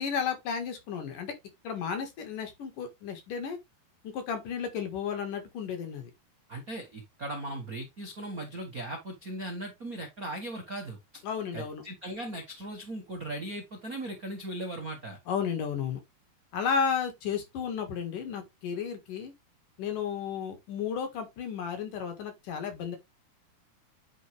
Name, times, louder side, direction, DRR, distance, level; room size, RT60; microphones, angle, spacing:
voice 1, 0.0-1.3 1.6-3.6 4.0-6.1 11.2-11.8 15.3-16.0 16.5-19.3 19.8-23.0, left 7 dB, 60° left, 2.9 m, -33 dB
voice 2, 6.5-11.0 11.5-15.2, right 1 dB, 80° right, 0.7 m, -38 dB
10.0 x 4.8 x 3.3 m
omnidirectional pair, 4.9 m